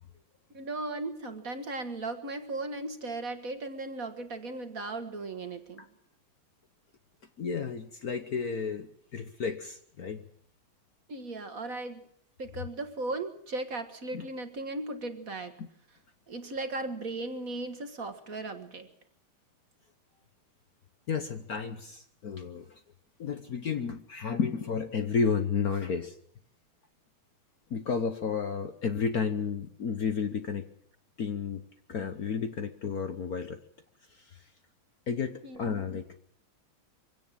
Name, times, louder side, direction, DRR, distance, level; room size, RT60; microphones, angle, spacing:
voice 1, 0.5-5.9 11.1-12.0 12.4-15.5 16.3-18.9 35.4-35.8, right 2 dB, 45° right, 8 dB, 1.7 m, -37 dB
voice 2, 7.4-10.2 14.1-14.3 15.6-15.7 21.1-22.8 23.2-26.1 27.7-30.7 31.2-31.6 31.9-33.6 34.1-34.4 35.1-36.1, left 6 dB, 50° left, 8 dB, 1.3 m, -32 dB
23.5 x 17.0 x 7.5 m, 0.65 s
omnidirectional pair, 2.4 m